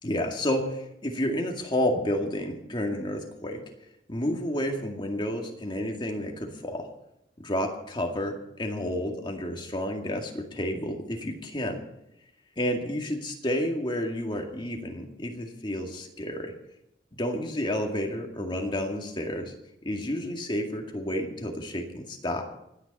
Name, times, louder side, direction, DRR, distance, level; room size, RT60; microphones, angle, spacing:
voice 1, 0.0-3.6 4.1-6.9 7.4-11.8 12.6-16.5 17.1-19.5 19.8-22.4, left 1 dB, 25° left, 2 dB, 2.1 m, -30 dB
28.0 x 9.7 x 4.2 m, 0.83 s
head